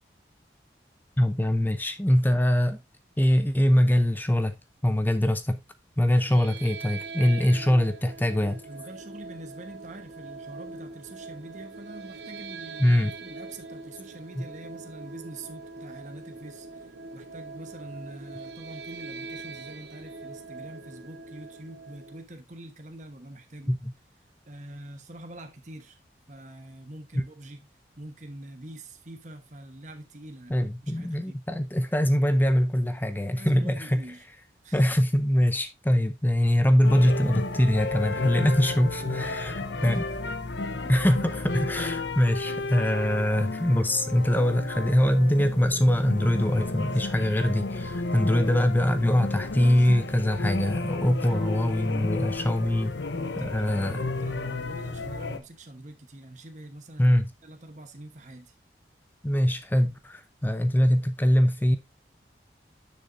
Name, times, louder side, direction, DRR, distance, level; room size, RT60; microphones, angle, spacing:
voice 1, 1.2-2.8 3.2-4.6 4.8-5.6 6.0-8.6 12.8-13.1 14.4-14.5 23.7-23.9 27.1-27.2 30.5-34.0 34.7-40.1 40.9-53.0 53.4-54.0 57.0-57.3 59.2-61.8, equal, 10° left, 0.6 m, -23 dB
sound 1, 6.1-22.2, right 4 dB, 75° right, 1.1 m, -42 dB
voice 2, 7.5-7.8 8.7-23.7 24.5-26.0 26.3-31.4 33.3-34.2 34.6-34.8 39.0-40.0 40.8-41.0 53.1-58.5, right 1 dB, 45° right, 1.1 m, -45 dB
sound 2, 36.8-55.4, left 3 dB, 85° left, 0.9 m, -33 dB
10.0 x 6.5 x 2.6 m
head